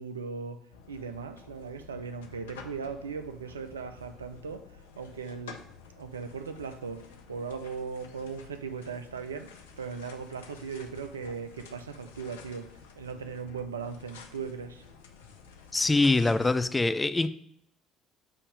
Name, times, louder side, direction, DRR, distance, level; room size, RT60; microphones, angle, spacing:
voice 1, 0.0-5.6 6.0-14.8, right 5 dB, 90° right, 0.4 m, -38 dB
sound 1, 0.7-16.6, left 5 dB, 80° left, 0.5 m, -51 dB
voice 2, 15.7-17.3, left 3 dB, 20° left, 0.4 m, -24 dB
7.0 x 2.8 x 5.1 m
hypercardioid pair, 55°, 0 cm